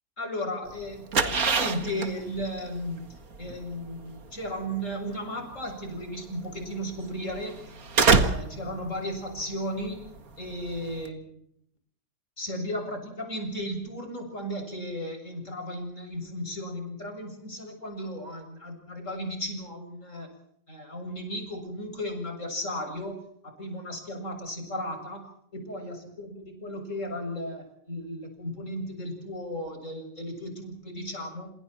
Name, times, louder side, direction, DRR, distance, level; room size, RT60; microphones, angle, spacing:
voice 1, 0.2-7.6 8.0-11.4 12.4-20.3 20.7-23.2 23.4-25.2 25.5-31.5, equal, 45° left, 4 dB, 7.6 m, -35 dB
sound 1, 0.7-11.1, right 4 dB, 60° right, 2.2 m, -28 dB
28.0 x 27.0 x 4.5 m, 0.69 s
omnidirectional pair, 1.8 m